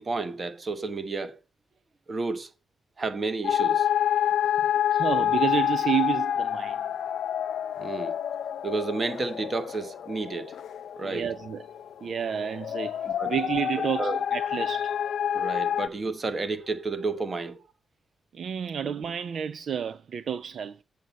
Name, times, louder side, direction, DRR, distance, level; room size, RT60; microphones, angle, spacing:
voice 1, 0.0-1.4 2.1-2.5 3.0-4.8 7.8-8.2 8.6-10.6 11.0-11.3 13.0-13.3 14.0-14.2 15.3-17.6, right 3 dB, 35° right, 1.1 m, -31 dB
sound 1, 3.4-15.9, left 10 dB, 80° left, 0.4 m, -28 dB
voice 2, 4.9-6.8 11.0-11.6 12.0-13.0 13.2-15.0 18.3-20.8, right 8 dB, 60° right, 0.4 m, -30 dB
8.1 x 7.6 x 5.2 m
wide cardioid pair, 135°, 0 cm